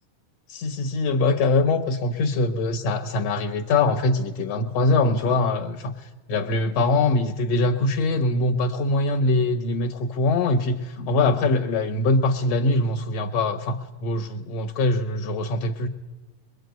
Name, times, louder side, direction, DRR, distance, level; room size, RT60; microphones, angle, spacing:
voice 1, 0.5-5.9 6.3-15.9, left 2 dB, 60° left, 3 dB, 2.1 m, -23 dB
23.0 x 23.0 x 9.4 m, 1.1 s
omnidirectional pair, 3.8 m